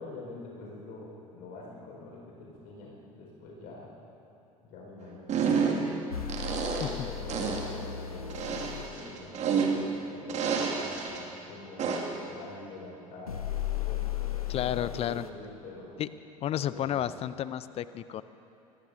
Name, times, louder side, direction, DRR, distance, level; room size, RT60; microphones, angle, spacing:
voice 1, 0.0-3.9 4.6-6.2 6.7-16.0 16.7-17.1, left 3 dB, 50° left, -2 dB, 4.6 m, -46 dB
sound 1, 5.3-5.9 6.3-7.0 7.3-7.7 8.3-10.0 10.3-11.2 11.8-12.2, right 5 dB, 40° right, 2.1 m, -29 dB
sound 2, 6.1-9.0 13.3-15.3, left 11 dB, 85° left, 0.8 m, -35 dB
voice 2, 14.5-15.2 16.0-16.1 16.4-18.2, left 11 dB, 35° left, 15 dB, 0.5 m, -31 dB
25.5 x 18.0 x 2.7 m, 2.8 s
figure-of-eight pair, 70°, 18 cm